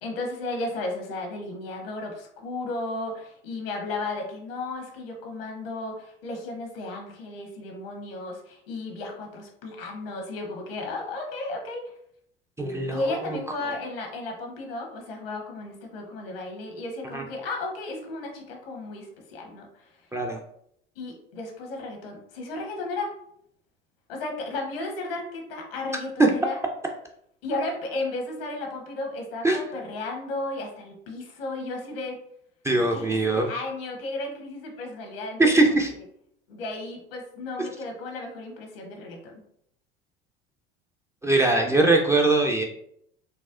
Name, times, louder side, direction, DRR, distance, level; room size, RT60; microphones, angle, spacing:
voice 1, 0.0-11.8 12.9-19.9 21.0-23.1 24.1-26.6 27.4-32.2 32.9-33.1 33.3-35.5 36.5-39.4, left 2 dB, 75° left, 2 dB, 1.0 m, -34 dB
voice 2, 12.6-13.4 13.6-13.7 17.1-17.2 20.1-20.4 26.2-26.3 29.4-29.6 32.6-33.5 35.4-35.9 41.2-42.6, right 2 dB, 10° right, 1 dB, 0.4 m, -21 dB
4.2 x 2.0 x 2.4 m, 0.70 s
hypercardioid pair, 80°, 30 cm